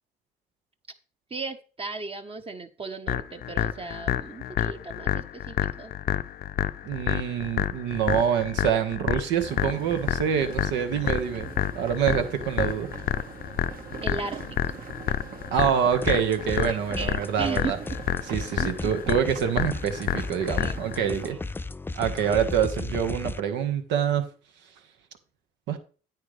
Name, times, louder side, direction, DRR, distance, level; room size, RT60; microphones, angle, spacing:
voice 1, 1.3-5.9 14.0-14.6 17.0-18.0 18.5-18.9 20.6-20.7 21.1-21.4, right 4 dB, 30° right, 5 dB, 1.2 m, -36 dB
sound 1, 3.1-21.1, left 11 dB, 55° left, 0.6 m, -29 dB
voice 2, 6.8-11.5 11.7-12.9 15.5-17.8 18.3-21.4 21.9-24.3 25.7-25.8, right 8 dB, 80° right, 7 dB, 1.6 m, -26 dB
sound 2, 9.5-21.3, right 6 dB, 55° right, 1.6 m, -43 dB
sound 3, 16.0-16.7 16.9-23.4, left 3 dB, 10° left, 0.4 m, -36 dB
9.6 x 8.8 x 3.4 m, 0.37 s
supercardioid pair, 70°, 18 cm